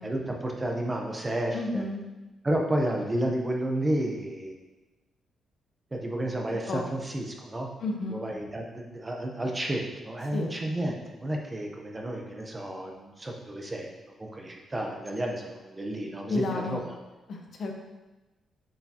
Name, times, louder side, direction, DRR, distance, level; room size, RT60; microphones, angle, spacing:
voice 1, 0.0-1.8 2.4-4.6 5.9-7.7 8.1-13.9 14.2-17.0, right 1 dB, 15° right, 1 dB, 0.7 m, -31 dB
voice 2, 1.5-2.0 6.7-6.8 7.8-8.2 10.3-10.5 16.3-16.8 17.3-17.7, left 2 dB, 50° left, 2 dB, 0.8 m, -31 dB
7.3 x 4.8 x 2.8 m, 1.1 s
wide cardioid pair, 155°, 0 cm